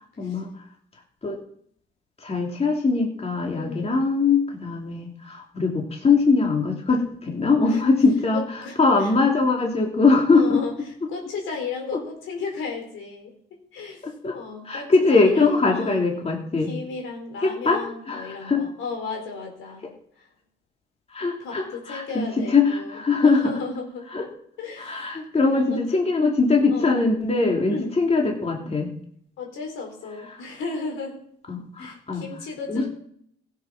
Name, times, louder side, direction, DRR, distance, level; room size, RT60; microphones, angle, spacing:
voice 1, 0.2-0.5 1.2-1.4 2.2-8.4 8.8-10.6 14.0-14.4 14.6-16.7 17.4-18.6 21.1-23.5 24.1-24.2 24.8-28.9 31.5-32.3 32.7-32.9, left 4 dB, 30° left, 0 dB, 2.9 m, -21 dB
voice 2, 3.5-4.0 7.6-7.9 8.3-9.1 10.3-10.8 11.1-13.3 13.7-16.0 16.6-19.9 20.1-20.3 21.4-24.1 24.6-25.1 25.4-25.8 26.7-27.0 27.7-28.0 28.6-28.9 29.4-31.2 31.8-32.9, left 4 dB, 85° left, 1 dB, 4.3 m, -34 dB
15.5 x 7.4 x 6.0 m, 0.66 s
cardioid pair, 90°, 20 cm